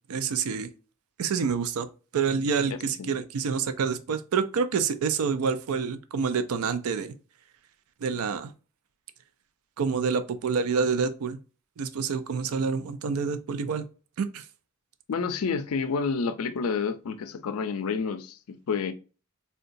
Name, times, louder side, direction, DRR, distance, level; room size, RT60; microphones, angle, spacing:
voice 1, 0.1-0.7 1.2-1.9 2.1-7.1 8.0-8.5 9.8-11.4 11.8-13.8 14.2-14.4, right 5 dB, 85° right, 0.4 m, -27 dB
voice 2, 15.1-18.9, left 5 dB, 80° left, 0.4 m, -29 dB
3.7 x 2.2 x 2.5 m
head